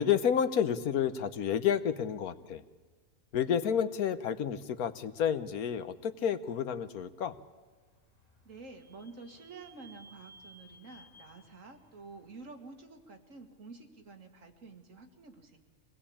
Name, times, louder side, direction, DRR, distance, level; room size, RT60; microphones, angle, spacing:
voice 1, 0.0-2.6 3.3-7.3, left 8 dB, 80° left, 12 dB, 1.4 m, -30 dB
Vehicle / Squeak, 7.4-13.0, right 1 dB, 25° left, 5.0 m, -59 dB
voice 2, 8.5-15.6, right 3 dB, 60° right, 5 dB, 2.2 m, -50 dB
24.5 x 19.0 x 8.6 m, 1.4 s
omnidirectional pair, 1.5 m